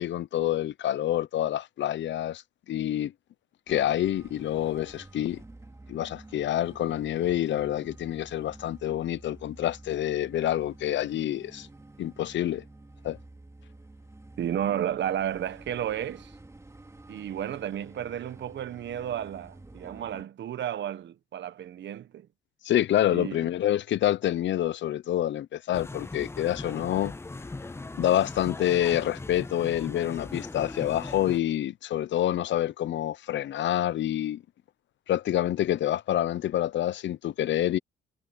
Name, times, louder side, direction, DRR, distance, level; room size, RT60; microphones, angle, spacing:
voice 1, 0.0-3.1 3.7-5.4 5.9-11.7 12.0-12.6 13.0-13.2 22.6-27.1 27.9-34.4 35.1-37.8, left 12 dB, 65° left, 0.8 m, -27 dB
sound 1, 3.7-20.2, right 2 dB, 15° right, 2.6 m, -49 dB
voice 2, 14.4-16.3 17.1-22.3 23.1-23.5, right 10 dB, 65° right, 1.4 m, -32 dB
sound 2, 25.7-31.4, left 2 dB, 15° left, 0.6 m, -39 dB
cardioid pair, 90°, 20 cm